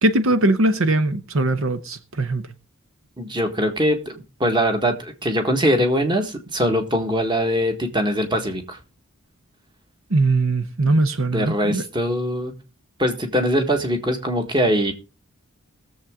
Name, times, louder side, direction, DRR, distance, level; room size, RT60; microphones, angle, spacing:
voice 1, 0.0-2.4 10.1-11.8, right 2 dB, 70° right, 0.9 m, -20 dB
voice 2, 3.2-8.8 11.3-12.5 13.0-14.9, equal, 20° right, 1.5 m, -22 dB
19.5 x 7.3 x 3.7 m
head